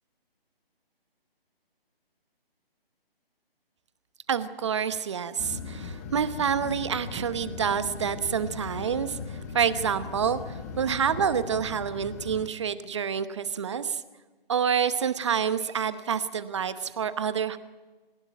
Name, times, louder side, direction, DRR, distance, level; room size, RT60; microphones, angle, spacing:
voice 1, 4.3-14.0 14.5-17.6, right 7 dB, 30° right, 13 dB, 0.9 m, -28 dB
sound 1, 5.4-12.5, left 4 dB, 15° left, 1.1 m, -38 dB
27.5 x 16.5 x 9.3 m, 1.3 s
figure-of-eight pair, 155°, 30 cm